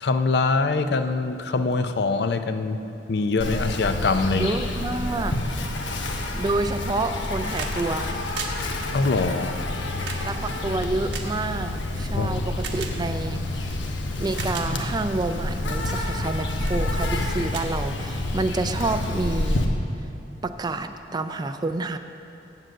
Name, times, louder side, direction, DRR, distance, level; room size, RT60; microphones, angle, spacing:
voice 1, 0.0-2.8 3.1-4.5 8.9-9.5 12.2-12.3, left 3 dB, 60° left, 9 dB, 0.5 m, -23 dB
Insect, 3.4-19.6, left 1 dB, 85° left, 1.0 m, -28 dB
voice 2, 4.3-5.3 6.4-8.2 10.2-13.8 14.2-19.7 20.4-22.0, right 2 dB, 20° right, 9 dB, 0.3 m, -28 dB
sound 1, 7.1-7.8 8.1-11.9 12.6-12.9 13.7-13.8 14.2-14.7 15.3-15.5 16.1-16.3 16.6-16.8 17.2-17.3 17.5-18.4 19.6-19.7, right 5 dB, 65° right, 1.0 m, -37 dB
7.8 x 7.5 x 7.5 m, 2.7 s
head